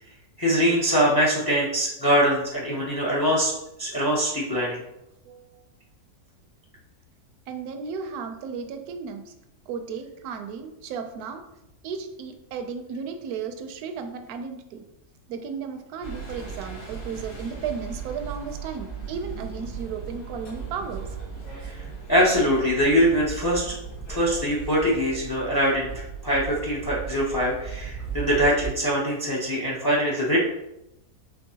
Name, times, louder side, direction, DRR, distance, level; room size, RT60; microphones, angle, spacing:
voice 1, 0.4-3.5 3.8-4.8 21.5-21.8 22.1-23.7 24.1-30.4, equal, 35° left, -4 dB, 0.3 m, -23 dB
voice 2, 5.2-5.6 7.5-9.3 9.7-11.4 11.8-14.8 15.3-21.2 30.0-30.3, right 6 dB, 80° right, 6 dB, 1.1 m, -34 dB
sound 1, 16.0-28.7, right 6 dB, 85° left, 1.8 m, -37 dB
4.4 x 3.3 x 2.8 m, 0.88 s
omnidirectional pair, 1.6 m